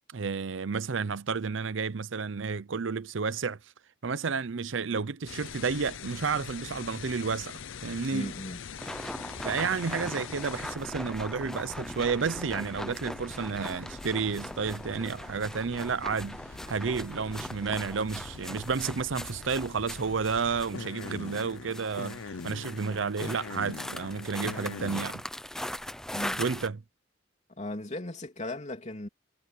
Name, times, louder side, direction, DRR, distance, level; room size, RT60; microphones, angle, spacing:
voice 1, 0.1-3.6 4.0-8.3 9.4-16.4 16.7-25.2 26.4-26.8, right 5 dB, 75° right, 0.6 m, -31 dB
sound 1, 5.3-25.1, left 5 dB, 80° left, 0.7 m, -44 dB
voice 2, 8.1-8.6 26.1-26.4 27.5-29.1, left 1 dB, 35° left, 3.2 m, -37 dB
sound 2, 8.8-26.7, equal, 5° left, 0.8 m, -40 dB
head